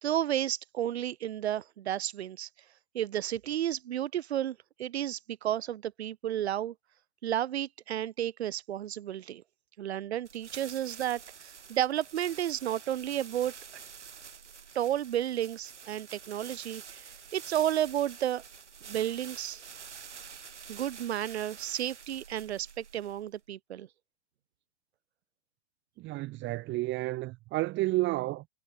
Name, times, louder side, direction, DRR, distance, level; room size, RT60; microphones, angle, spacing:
voice 1, 0.0-2.5 2.9-6.7 7.2-9.4 9.8-13.5 14.7-18.4 18.9-19.7 20.7-23.9, right 11 dB, 65° right, 2.3 m, -32 dB
sound 1, 10.2-23.4, right 6 dB, 80° right, 5.0 m, -48 dB
voice 2, 26.0-28.5, right 19 dB, 30° right, 2.7 m, -31 dB
hypercardioid pair, 115°, 35 cm